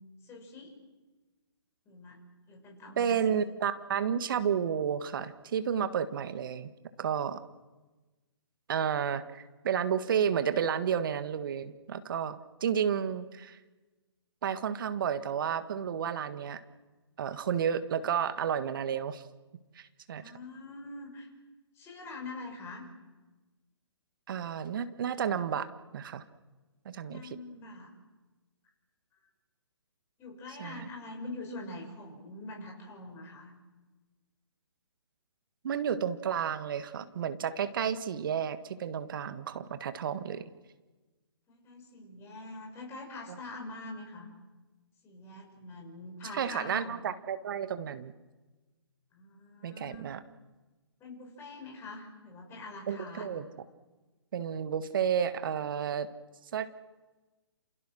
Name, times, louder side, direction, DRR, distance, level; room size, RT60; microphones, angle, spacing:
voice 1, 0.2-0.8 1.8-3.3 20.1-21.3 21.7-22.9 27.0-27.9 30.2-33.5 41.5-44.3 45.0-47.0 49.1-50.1 51.0-53.3, left 2 dB, 15° left, 1 dB, 6.5 m, -44 dB
voice 2, 3.0-6.7 7.0-7.4 8.7-13.6 14.4-16.6 17.2-19.2 19.7-20.2 24.3-26.2 26.9-27.2 30.6-30.9 35.6-40.5 46.3-48.1 49.6-50.2 52.9-53.5 54.3-56.1 56.5-56.7, right 8 dB, 50° right, 11 dB, 1.6 m, -31 dB
28.0 x 28.0 x 6.3 m, 1.2 s
figure-of-eight pair, 135°, 15 cm